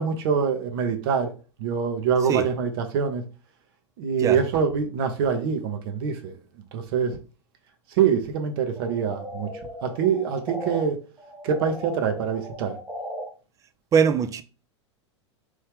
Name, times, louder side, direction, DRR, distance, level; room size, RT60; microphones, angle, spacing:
voice 1, 0.0-1.3 1.6-3.2 4.0-6.3 6.7-7.2 8.0-9.5 9.8-11.0 11.4-12.7, right 7 dB, 55° right, 0.7 m, -24 dB
sound 1, 8.8-10.8 11.2-13.2, left 1 dB, 5° right, 1.0 m, -37 dB
voice 2, 13.9-14.4, right 7 dB, 20° right, 0.4 m, -21 dB
3.1 x 2.7 x 3.5 m
figure-of-eight pair, 90°, 15 cm